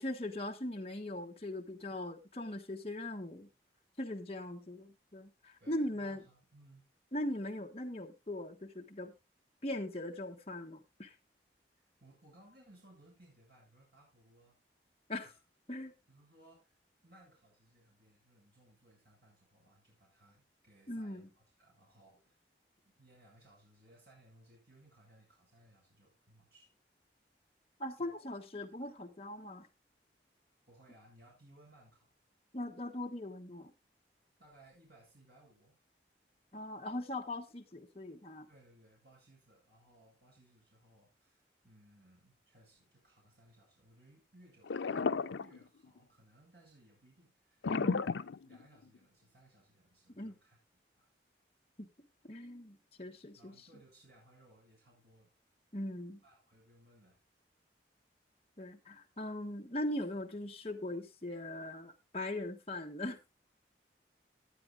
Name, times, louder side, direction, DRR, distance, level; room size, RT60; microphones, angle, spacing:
voice 1, 0.0-3.5 4.0-6.2 7.1-9.1 9.6-11.1 15.1-15.3 15.7-15.9 20.9-21.3 27.8-29.7 32.5-33.7 36.5-38.5 47.7-48.0 50.2-50.4 51.8-51.9 52.2-53.7 55.7-56.2 58.6-63.2, left 1 dB, 35° left, 2 dB, 1.3 m, -40 dB
voice 2, 5.6-6.9 11.8-14.5 15.2-15.4 16.1-16.7 17.0-22.4 23.0-26.7 28.0-28.1 30.7-32.1 34.4-35.8 38.5-44.9 45.4-48.1 48.4-50.6 51.0-51.1 53.4-55.3 56.2-57.2, right 1 dB, 60° right, -2 dB, 7.8 m, -63 dB
sound 1, 44.6-46.0 47.6-49.0, left 5 dB, 85° left, 0.5 m, -33 dB
19.0 x 9.4 x 2.4 m, 0.24 s
head